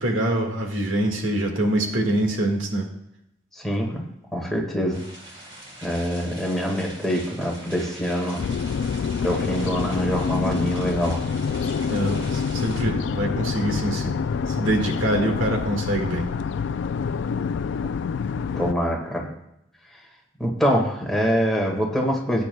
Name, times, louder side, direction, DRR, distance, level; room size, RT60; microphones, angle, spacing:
voice 1, 0.0-2.9 11.9-14.2 14.5-16.3, right 1 dB, 80° right, 2 dB, 1.8 m, -24 dB
voice 2, 3.5-4.0 4.3-5.0 5.8-8.4 9.2-11.2 18.6-19.3 20.4-22.4, equal, ahead, -1 dB, 1.8 m, -24 dB
sound 1, 4.9-12.8, right 1 dB, 30° right, 2.3 m, -43 dB
sound 2, 8.4-18.7, left 6 dB, 65° left, 0.3 m, -27 dB
17.0 x 9.3 x 2.3 m, 0.83 s
head